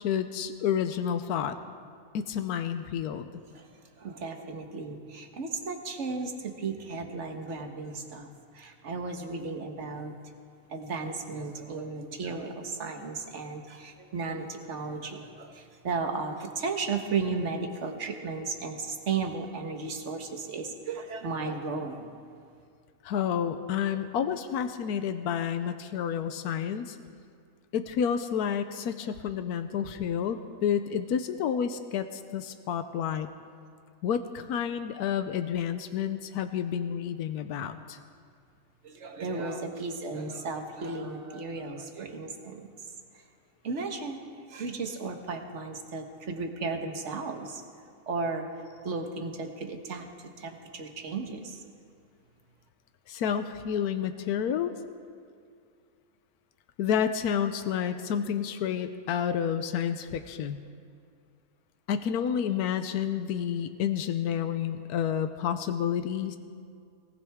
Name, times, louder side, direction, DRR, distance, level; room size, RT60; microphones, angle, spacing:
voice 1, 0.0-1.6 2.1-3.3 23.0-27.0 27.7-33.3 34.0-38.0 53.1-54.7 56.8-60.6 61.9-66.4, left 8 dB, 85° left, 9 dB, 1.2 m, -30 dB
voice 2, 4.0-8.3 8.5-10.1 10.7-22.1 38.8-42.7 43.6-44.2 44.5-47.6 48.1-48.5 48.8-50.1 50.4-51.6, right 4 dB, 50° right, 4 dB, 1.6 m, -34 dB
21.5 x 18.5 x 3.6 m, 2.3 s
omnidirectional pair, 1.6 m